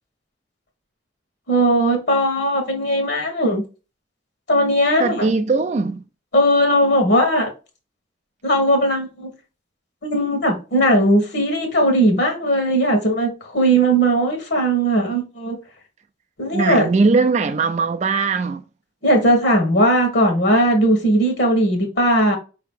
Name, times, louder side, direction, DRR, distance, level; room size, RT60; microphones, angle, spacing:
voice 1, 1.5-3.6 4.5-5.3 6.3-7.5 8.4-9.3 10.0-15.6 16.4-16.9 19.0-22.4, right 1 dB, 60° left, 1.1 m, -18 dB
voice 2, 5.0-6.0 16.5-18.6, right 4 dB, 35° right, 0.3 m, -20 dB
4.8 x 2.8 x 3.6 m
head